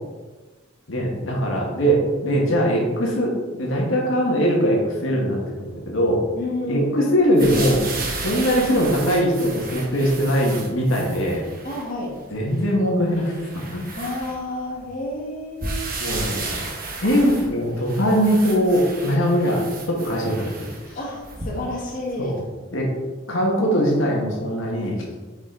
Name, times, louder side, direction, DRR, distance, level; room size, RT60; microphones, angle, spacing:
voice 1, 0.9-6.2 6.7-7.9 8.2-11.4 12.3-13.9 16.0-16.4 17.0-19.6 19.9-20.5 22.2-22.4 22.7-22.9 23.3-25.0, equal, 85° left, -2 dB, 1.7 m, -21 dB
voice 2, 6.4-7.0 11.6-12.2 13.9-16.2 20.9-22.4, left 1 dB, 45° left, -4 dB, 1.6 m, -30 dB
sound 1, 7.4-11.9 12.5-12.6 13.2-14.8 15.6-21.8 22.4-22.5, right 3 dB, 45° right, 1.3 m, -33 dB
7.3 x 5.1 x 3.9 m, 1.3 s
head